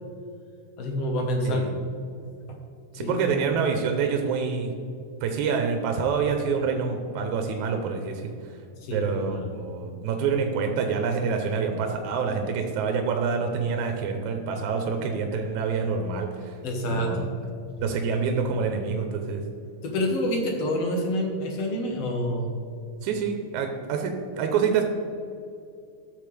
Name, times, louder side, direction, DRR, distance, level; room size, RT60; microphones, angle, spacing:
voice 1, 0.8-1.6 3.0-3.4 8.8-9.5 16.6-17.3 19.8-22.5, left 1 dB, 60° left, 1 dB, 2.2 m, -27 dB
voice 2, 1.4-1.8 2.9-4.7 5.2-8.2 8.9-16.6 16.9-17.2 17.8-19.4 23.0-24.8, right 5 dB, 85° right, 4 dB, 2.2 m, -27 dB
13.5 x 7.4 x 3.4 m, 2.5 s
omnidirectional pair, 3.4 m